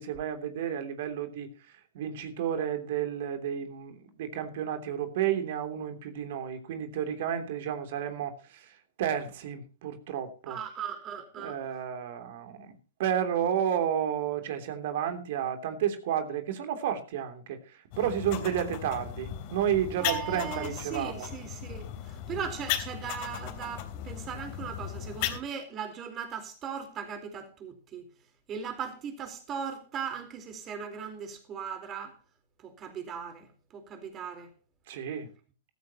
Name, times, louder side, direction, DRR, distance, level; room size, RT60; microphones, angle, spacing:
voice 1, 0.0-10.6 11.4-12.7 13.0-21.3 34.9-35.3, right 9 dB, 55° right, 3.1 m, -32 dB
voice 2, 10.5-11.6 20.0-28.1 28.5-32.2 32.6-34.5, right 7 dB, 30° right, 4.1 m, -38 dB
sound 1, 17.9-25.4, left 11 dB, 45° left, 3.1 m, -37 dB
15.0 x 14.5 x 3.0 m
hypercardioid pair, 120°, 0 cm